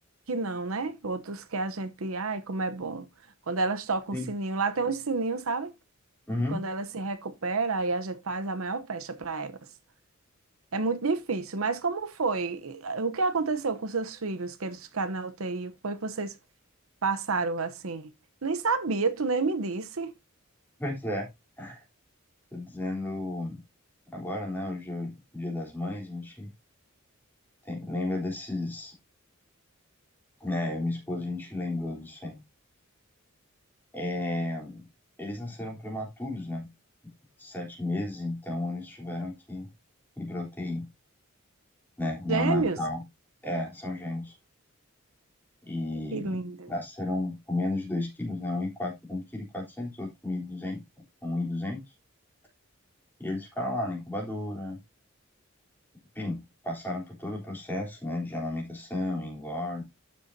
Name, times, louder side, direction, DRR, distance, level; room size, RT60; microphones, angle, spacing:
voice 1, 0.3-3.1 3.5-5.7 6.5-9.6 10.7-16.4 17.0-18.1 18.4-20.1 42.3-42.8 46.1-46.7, right 3 dB, 80° right, 0.9 m, -30 dB
voice 2, 6.3-6.6 20.8-21.3 21.6-21.8 22.5-23.5 24.1-26.5 27.7-28.9 30.4-32.4 33.9-34.9 35.2-36.7 37.4-39.7 40.2-40.8 42.0-43.0 43.4-44.3 45.6-46.4 46.7-50.8 51.2-51.8 53.2-54.8 56.2-59.8, left 2 dB, 10° left, 3.7 m, -33 dB
12.0 x 6.8 x 2.8 m
head